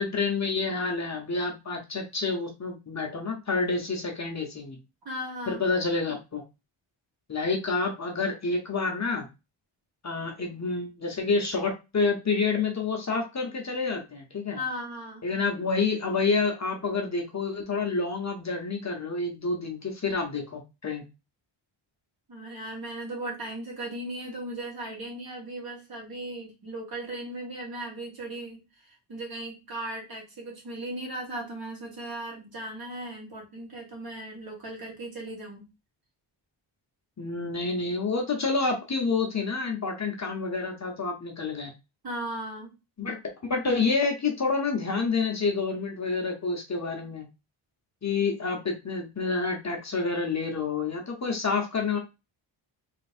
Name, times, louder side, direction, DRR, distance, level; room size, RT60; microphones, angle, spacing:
voice 1, 0.0-4.8 5.5-6.4 7.3-9.3 10.0-14.6 15.2-21.0 37.2-41.7 43.0-43.2 43.5-47.2 48.0-52.0, left 4 dB, 35° left, 2 dB, 0.9 m, -28 dB
voice 2, 5.1-5.6 14.5-15.2 22.3-35.7 42.0-42.7, right 1 dB, 45° right, -1 dB, 1.9 m, -37 dB
3.4 x 2.9 x 4.3 m, 0.26 s
wide cardioid pair, 160°, 49 cm